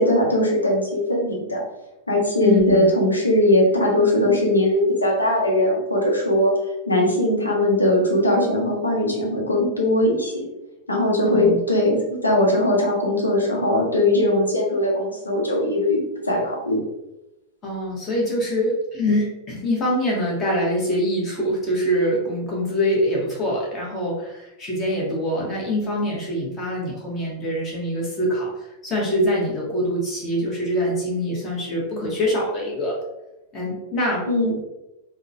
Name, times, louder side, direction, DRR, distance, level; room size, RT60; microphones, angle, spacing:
voice 1, 0.0-1.6 2.1-6.5 6.9-10.5 10.9-16.8 34.2-34.5, left 1 dB, 80° left, -2 dB, 0.8 m, -20 dB
voice 2, 2.4-2.9 11.2-11.6 17.6-33.0 33.5-34.2, equal, 25° left, -4 dB, 1.2 m, -24 dB
3.6 x 2.1 x 2.6 m, 0.94 s
figure-of-eight pair, 90°, 0 cm